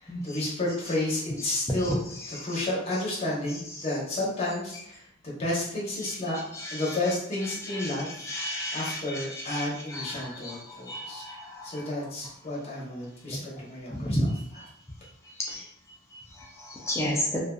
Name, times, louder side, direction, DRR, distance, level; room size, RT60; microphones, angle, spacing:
voice 1, 0.0-2.0 2.3-6.4 6.7-8.3 8.7-11.2 11.6-14.6, left 1 dB, 30° left, -6 dB, 0.8 m, -31 dB
voice 2, 8.2-11.8 14.0-14.3 15.5-15.6 16.6-17.4, equal, 15° left, -2 dB, 0.3 m, -32 dB
2.4 x 2.4 x 2.2 m, 0.73 s
head